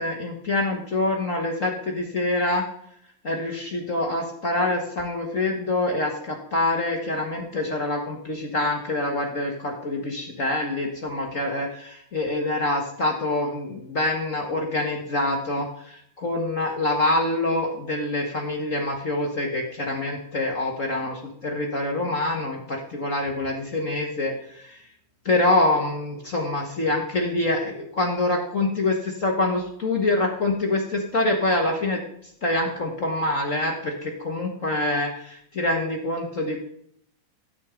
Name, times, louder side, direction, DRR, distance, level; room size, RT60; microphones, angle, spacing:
voice 1, 0.0-2.6 3.2-24.8 25.2-32.0 32.4-36.6, left 2 dB, 60° left, 1 dB, 0.8 m, -25 dB
13.0 x 10.5 x 5.1 m, 0.69 s
omnidirectional pair, 3.9 m